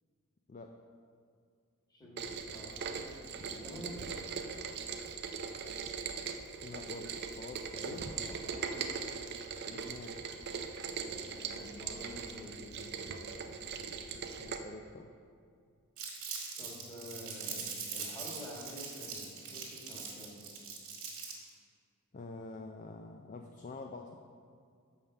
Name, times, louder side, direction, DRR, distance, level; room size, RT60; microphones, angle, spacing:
voice 1, 1.9-3.1 3.3-4.0 7.7-8.8 11.0-13.3 16.6-20.5, left 1 dB, 15° left, -3 dB, 1.5 m, -49 dB
Rain, 2.2-14.6, right 5 dB, 50° right, 0.5 m, -40 dB
voice 2, 6.6-8.1 9.7-10.2 14.4-15.1 22.1-24.2, left 3 dB, 35° left, 4 dB, 0.4 m, -46 dB
Crumpling crinkling, 16.0-21.5, right 5 dB, 75° right, 1.9 m, -42 dB
6.7 x 5.6 x 6.6 m, 2.2 s
head